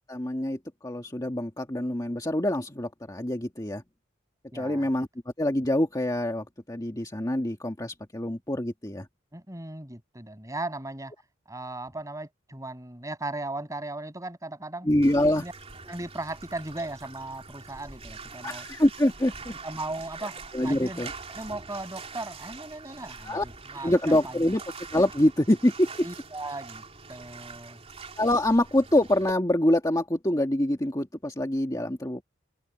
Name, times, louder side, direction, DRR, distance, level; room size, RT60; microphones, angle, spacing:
voice 1, 0.1-3.8 4.5-5.1 5.4-9.1 14.9-15.4 18.4-19.5 20.5-21.1 23.2-23.4 23.8-24.6 24.9-25.9 28.2-32.2, left 1 dB, 20° left, 1.8 m, -25 dB
voice 2, 4.5-4.9 9.3-11.1 11.5-14.9 15.4-15.5 15.8-18.7 19.6-24.4 26.0-26.8 27.1-27.8, right 2 dB, 15° right, 7.1 m, -37 dB
Bathtub (filling or washing), 15.0-29.3, right 4 dB, 30° right, 3.5 m, -44 dB
open air
head